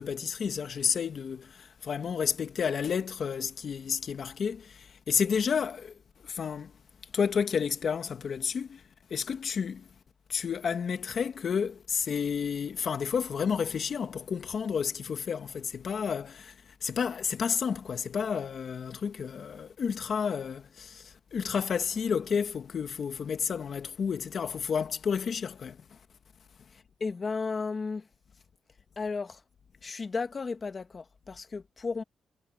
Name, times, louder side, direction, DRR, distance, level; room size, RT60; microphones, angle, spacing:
voice 1, 0.0-5.9 6.2-6.7 7.1-8.8 9.1-9.8 10.3-16.5 16.8-25.8, left 6 dB, 60° left, 1.6 m, -31 dB
voice 2, 27.0-28.0 29.0-29.4 29.8-32.0, left 4 dB, 40° left, 1.7 m, -34 dB
cardioid pair, 70°, 0 cm